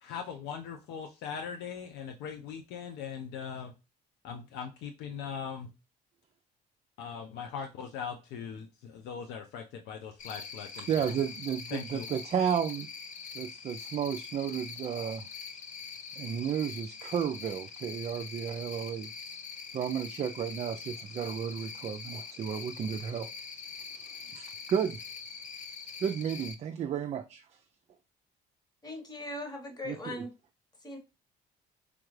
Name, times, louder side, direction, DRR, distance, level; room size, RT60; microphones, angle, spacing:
voice 1, 0.0-3.7 4.2-5.7 7.0-11.0 11.7-12.1, left 7 dB, 90° left, 0.5 m, -40 dB
Cricket, 10.2-26.5, left 5 dB, 50° left, 0.6 m, -43 dB
voice 2, 10.8-12.9 13.3-15.2 16.2-19.4 19.7-23.3 24.3-25.0 26.0-27.4 29.9-30.0, right 8 dB, 40° right, 0.4 m, -33 dB
voice 3, 28.8-30.3 30.8-31.0, left 1 dB, 25° left, 1.3 m, -39 dB
4.9 x 2.3 x 3.1 m
cardioid pair, 110°, 17 cm